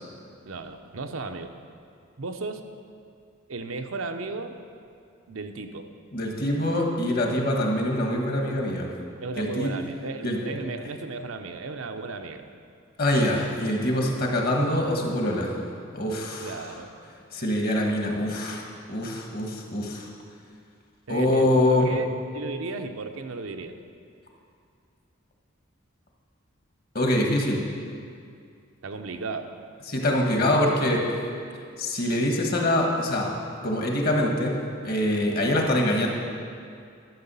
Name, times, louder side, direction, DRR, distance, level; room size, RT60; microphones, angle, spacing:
voice 1, 0.4-1.5 2.2-2.6 3.5-4.6 5.3-5.9 9.2-12.5 16.4-16.9 21.1-22.1 22.3-23.8 28.8-29.6, right 3 dB, 80° right, 6 dB, 0.7 m, -35 dB
voice 2, 6.1-8.9 9.3-9.7 10.2-10.4 13.0-15.6 15.9-16.7 17.3-18.6 18.9-20.1 21.1-21.9 26.9-27.6 29.9-31.0 31.8-33.3 33.6-36.1, left 1 dB, 45° left, 1 dB, 1.4 m, -24 dB
12.0 x 6.8 x 5.5 m, 2.4 s
head